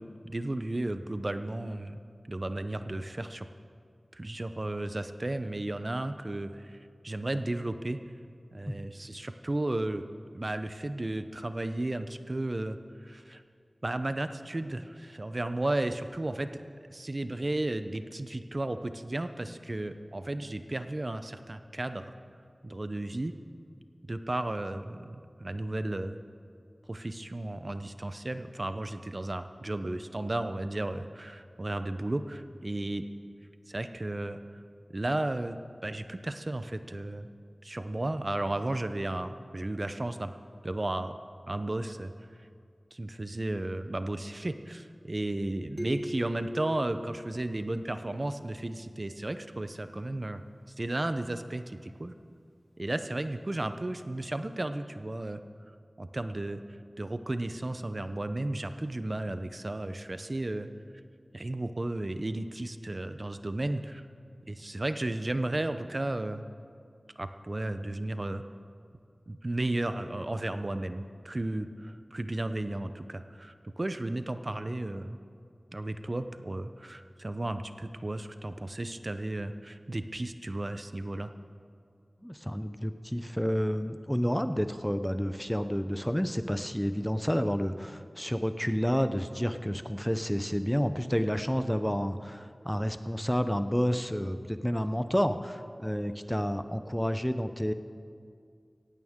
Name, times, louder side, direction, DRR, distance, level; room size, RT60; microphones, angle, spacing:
voice 1, 0.0-2.0 2.3-3.5 4.1-6.8 7.0-8.0 8.5-10.1 10.3-12.8 13.0-13.4 13.8-16.6 16.9-22.1 22.6-23.3 24.1-26.2 26.9-33.1 33.7-34.6 34.9-37.3 37.6-40.3 40.6-41.1 41.5-42.1 42.9-50.4 50.8-52.1 52.8-55.4 56.0-56.6 57.0-60.7 61.3-64.0 64.5-66.4 67.2-68.4 69.3-75.2 75.7-81.3, right 1 dB, 45° right, 10 dB, 0.6 m, -34 dB
sound 1, 45.8-48.3, equal, 10° right, 3.1 m, -40 dB
voice 2, 82.2-97.7, equal, 5° left, 10 dB, 0.6 m, -30 dB
17.5 x 15.5 x 3.7 m, 2.3 s
wide cardioid pair, 60°, 0 cm